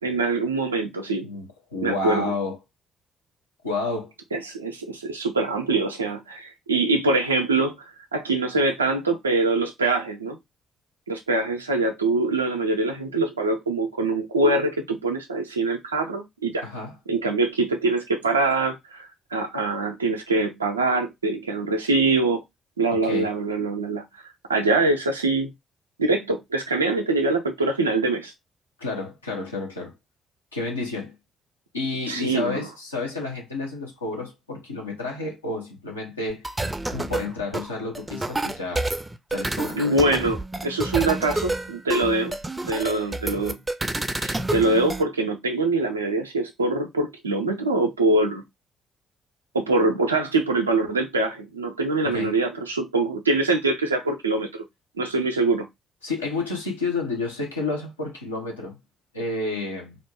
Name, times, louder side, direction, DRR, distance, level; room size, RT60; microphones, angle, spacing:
voice 1, 0.0-1.3 1.8-2.3 4.3-7.8 8.1-10.4 11.1-16.7 17.1-22.4 22.8-24.0 24.5-25.5 26.0-28.3 32.1-32.7 39.7-42.4 42.6-43.6 44.2-48.4 49.5-54.6 55.0-55.7, right 3 dB, 85° right, 0.4 m, -24 dB
voice 2, 1.2-2.6 3.6-4.1 16.6-16.9 22.9-23.3 28.8-29.9 30.5-31.1 31.7-36.5 36.9-38.9 39.3-39.8 52.0-52.4 56.0-58.8 59.1-60.0, left 3 dB, 85° left, 0.6 m, -30 dB
sound 1, 36.3-45.0, right 2 dB, 15° right, 0.4 m, -29 dB
2.5 x 2.1 x 3.4 m
figure-of-eight pair, 40°, 0 cm